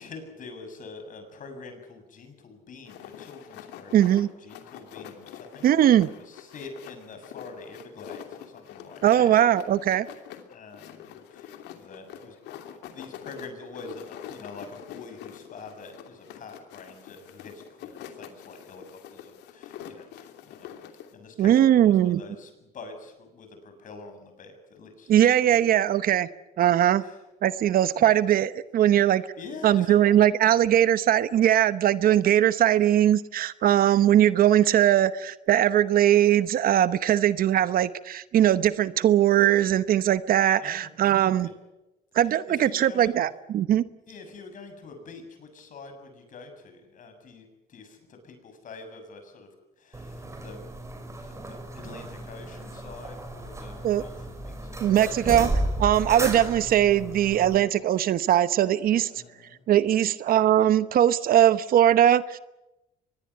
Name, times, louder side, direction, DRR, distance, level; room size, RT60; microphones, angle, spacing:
voice 1, 0.0-5.7 6.2-9.4 9.7-9.8 10.5-20.7 21.1-25.8 27.0-27.2 28.0-28.1 29.4-30.3 33.9-34.1 40.6-40.9 41.3-41.5 42.3-43.2 44.1-50.7 51.2-55.3 59.0-59.6, left 3 dB, 50° left, 7 dB, 7.3 m, -45 dB
sound 1, 2.8-21.1, left 10 dB, 85° left, 2.9 m, -45 dB
voice 2, 3.9-4.3 5.6-6.1 9.0-10.1 21.4-22.2 25.1-26.3 26.6-27.0 27.4-29.2 29.6-41.5 42.1-43.8 53.8-54.0 54.8-55.5 55.8-59.1 59.7-62.4, right 11 dB, 60° right, 15 dB, 1.0 m, -20 dB
sound 2, 49.9-57.6, right 1 dB, 15° right, 5.2 m, -34 dB
24.5 x 21.5 x 9.5 m, 0.98 s
cardioid pair, 110°, 17 cm